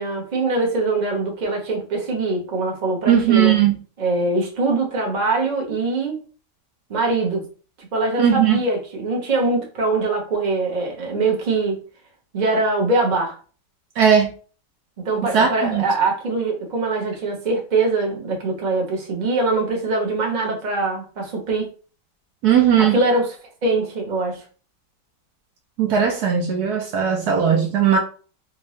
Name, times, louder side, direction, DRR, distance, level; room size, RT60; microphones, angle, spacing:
voice 1, 0.0-3.6 4.0-6.2 6.9-7.5 7.8-11.8 12.3-13.4 15.0-21.7 22.8-23.3 23.6-24.4, right 3 dB, 35° right, 0.9 m, -23 dB
voice 2, 3.1-3.8 8.2-8.6 14.0-14.3 15.2-15.8 22.4-23.0 25.8-28.0, right 8 dB, 70° right, 1.1 m, -18 dB
3.7 x 2.7 x 3.1 m
omnidirectional pair, 1.9 m